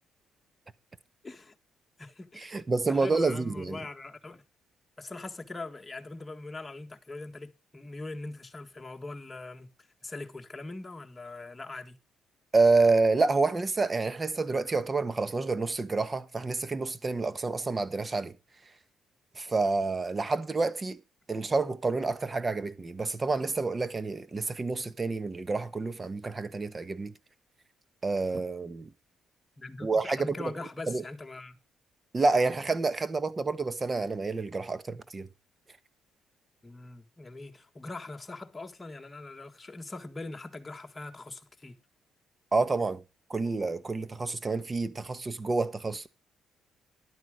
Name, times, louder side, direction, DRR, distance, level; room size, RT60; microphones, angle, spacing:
voice 1, 1.2-1.5 2.0-2.6 2.9-4.4 5.0-9.7 10.0-12.0 29.6-31.6 36.6-41.8, left 2 dB, 20° left, 1.7 m, -42 dB
voice 2, 2.4-3.8 12.5-18.3 19.3-21.0 21.3-27.1 28.0-28.9 29.8-30.5 30.9-31.0 32.1-35.3 42.5-43.0 43.3-46.1, right 3 dB, 30° right, 1.1 m, -28 dB
11.5 x 9.1 x 5.0 m
cardioid pair, 90°, 0 cm